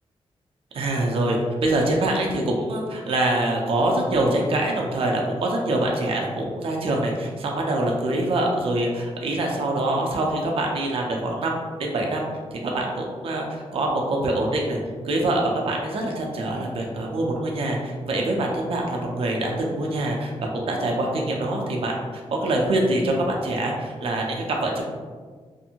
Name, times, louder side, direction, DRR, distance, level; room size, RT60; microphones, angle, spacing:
voice 1, 0.7-11.5 11.8-12.2 12.5-14.8 15.0-21.9 22.4-24.8, right 1 dB, 60° right, 0 dB, 0.5 m, -24 dB
2.6 x 2.5 x 2.8 m, 1.5 s
wide cardioid pair, 160°, 11 cm